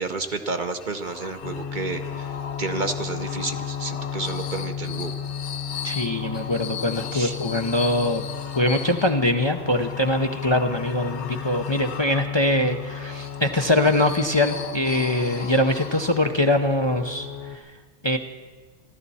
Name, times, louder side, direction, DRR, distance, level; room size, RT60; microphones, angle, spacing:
voice 1, 0.0-2.3 2.6-5.1 7.1-7.3, right 3 dB, 45° right, 7 dB, 0.9 m, -30 dB
sound 1, 0.8-16.5, left 8 dB, 75° left, 1.0 m, -38 dB
sound 2, 1.4-17.6, left 7 dB, 50° left, 1.4 m, -35 dB
voice 2, 5.8-8.2 8.5-17.6 18.0-18.2, left 1 dB, 25° left, 4 dB, 0.7 m, -23 dB
29.0 x 12.0 x 4.2 m, 1.3 s
omnidirectional pair, 1.2 m